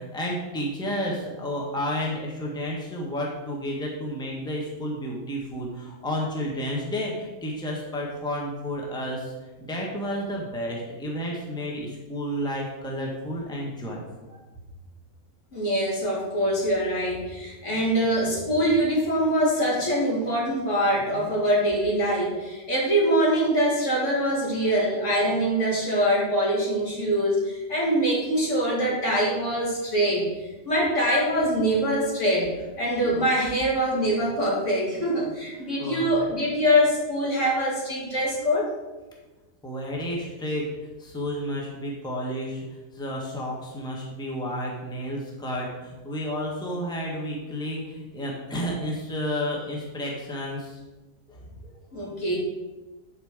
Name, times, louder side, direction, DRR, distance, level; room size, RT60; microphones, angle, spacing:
voice 1, 0.0-9.3 9.6-14.0 35.8-36.0 39.6-40.6 41.0-42.7 42.9-50.8 51.3-51.7, equal, 5° left, -3 dB, 1.4 m, -31 dB
voice 2, 15.5-30.3 30.6-32.5 32.8-38.7 51.9-52.4, equal, 60° left, -4 dB, 2.8 m, -24 dB
11.0 x 4.6 x 5.0 m, 1.1 s
omnidirectional pair, 1.4 m